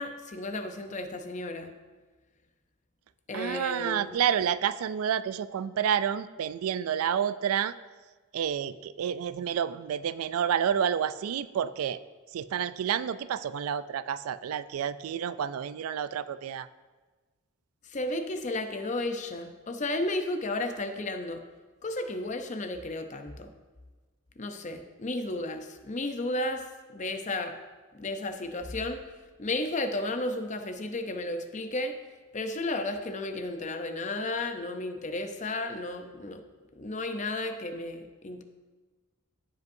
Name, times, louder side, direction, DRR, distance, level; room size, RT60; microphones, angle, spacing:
voice 1, 0.0-1.7 3.3-4.2 17.8-21.4 21.8-23.5 24.4-26.6 26.9-27.6 27.9-29.0 29.4-32.0 32.3-36.4 36.7-38.4, left 2 dB, 35° left, 7 dB, 0.6 m, -33 dB
voice 2, 3.3-7.7 8.3-12.0 12.3-16.7, right 8 dB, 90° right, 15 dB, 0.3 m, -29 dB
14.5 x 5.3 x 2.6 m, 1.3 s
head